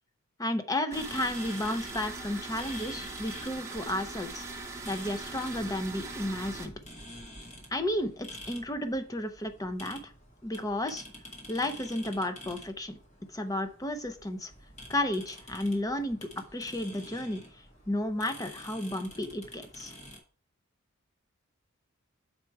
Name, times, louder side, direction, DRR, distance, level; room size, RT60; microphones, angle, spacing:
voice 1, 0.4-4.4 4.8-6.7 7.7-10.1 10.4-11.0 11.5-13.0 13.3-14.5 14.9-17.4 17.9-19.9, left 1 dB, 15° left, 8 dB, 0.7 m, -32 dB
sound 1, 0.9-20.2, left 1 dB, 35° left, 1.8 m, -49 dB
sound 2, 0.9-6.7, right 3 dB, 15° right, 1.0 m, -41 dB
6.6 x 4.7 x 4.6 m, 0.42 s
head